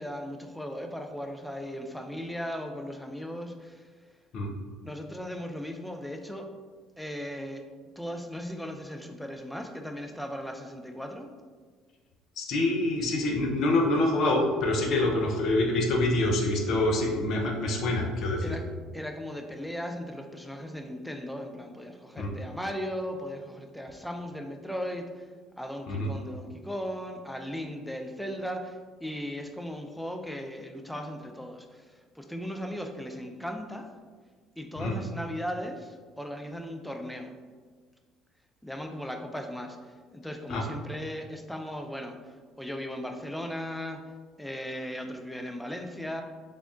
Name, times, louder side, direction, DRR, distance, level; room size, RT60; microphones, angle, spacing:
voice 1, 0.0-3.9 4.8-6.5 7.0-7.6 8.0-11.3 18.4-18.6 18.9-25.3 25.6-33.9 34.6-37.3 38.6-39.8 40.1-44.0 44.4-46.2, equal, 5° left, 4 dB, 0.4 m, -37 dB
voice 2, 12.4-18.5 22.2-22.3 25.9-26.1 34.8-34.9 40.5-40.6, left 2 dB, 60° left, 1 dB, 0.6 m, -26 dB
3.6 x 3.4 x 2.5 m, 1.5 s
hypercardioid pair, 60°, 0 cm